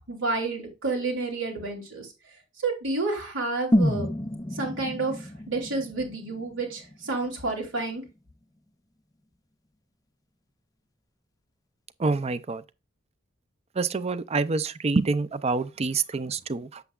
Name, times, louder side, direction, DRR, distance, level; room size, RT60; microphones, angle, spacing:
voice 1, 0.1-2.1 2.6-4.1 4.5-8.0, right 3 dB, 80° right, 3.2 m, -30 dB
sound 1, 3.7-7.7 8.0-8.1, left 1 dB, 20° left, 0.5 m, -29 dB
voice 2, 12.0-12.6 13.8-16.8, right 3 dB, 30° right, 0.5 m, -27 dB
7.9 x 6.9 x 2.4 m
head